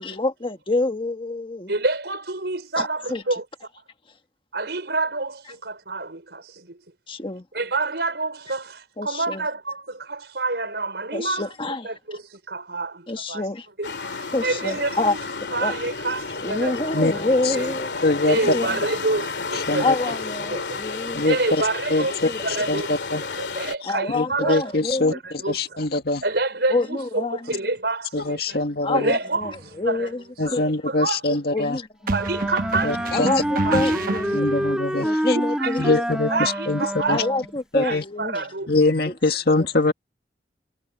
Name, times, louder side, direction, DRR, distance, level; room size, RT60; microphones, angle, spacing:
voice 1, 0.0-1.7 2.8-3.2 7.1-7.4 9.0-9.4 11.1-11.9 13.1-13.7 14.3-15.2 15.6-15.7 16.4-17.9 18.5-18.8 19.8-21.3 22.1-22.4 23.8-25.2 26.7-27.5 28.8-30.2 30.5-30.7 31.5-31.9 33.1-34.5 35.0-35.8 37.1-38.5, left 2 dB, 30° left, 1.4 m, -27 dB
voice 2, 1.7-3.4 4.5-6.8 7.5-11.5 11.8-13.5 13.8-15.2 15.5-17.0 17.5-17.8 18.3-19.9 20.5-20.8 21.2-22.9 23.4-24.7 25.1-25.8 26.2-28.6 28.9-29.5 29.8-30.1 30.5-30.6 30.9-31.6 32.1-33.3 33.7-34.0 35.3-36.0 36.3-37.3 37.8-38.7, right 3 dB, 70° right, 5.9 m, -28 dB
sound 1, 13.8-23.7, left 4 dB, 80° left, 2.3 m, -31 dB
voice 3, 18.0-18.4 19.5-20.0 21.1-21.6 21.9-22.3 22.7-23.2 23.8-26.2 28.1-29.1 30.4-31.8 32.8-33.3 33.7-33.8 34.3-35.4 35.8-37.2 37.7-38.0 38.7-39.9, left 2 dB, 60° left, 2.1 m, -23 dB
sound 2, 29.4-29.7 32.1-34.7, right 2 dB, 55° right, 1.2 m, -29 dB
Wind instrument woodwind instrument, 32.0-37.6, equal, 5° right, 1.6 m, -27 dB
head